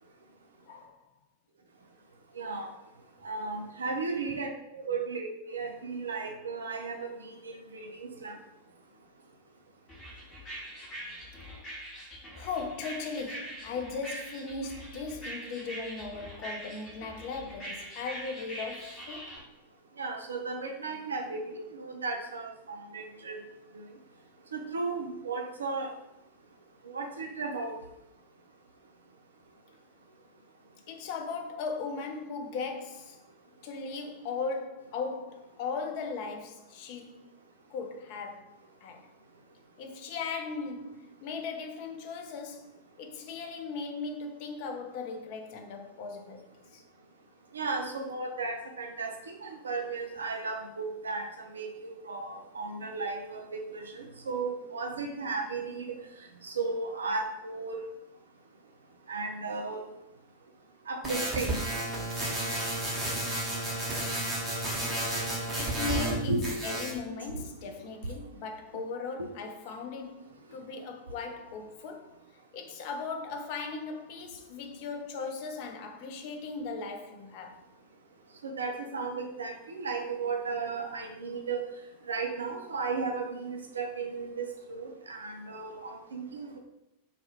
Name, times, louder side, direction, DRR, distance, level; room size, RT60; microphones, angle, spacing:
voice 1, 2.4-2.7 3.2-8.3 20.0-21.4 21.8-23.4 24.5-25.9 26.9-27.8 47.5-49.1 49.4-51.7 52.0-55.9 56.4-57.8 59.1-59.8 60.9-61.6 66.3-66.5 67.3-67.4 78.4-81.6 82.1-86.6, right 4 dB, 70° right, 0.4 m, -35 dB
sound 1, 9.9-19.4, right 1 dB, 25° left, 0.9 m, -43 dB
voice 2, 12.4-19.4 30.9-33.2 33.6-37.3 37.7-38.5 38.8-39.1 39.8-42.7 43.0-46.5 46.7-46.8 65.6-66.3 66.6-72.1 72.5-77.6, left 4 dB, 45° left, 0.3 m, -38 dB
sound 2, 61.0-66.2 66.4-67.0, right 1 dB, 10° right, 0.8 m, -32 dB
2.2 x 2.0 x 2.8 m
figure-of-eight pair, 90°, 0 cm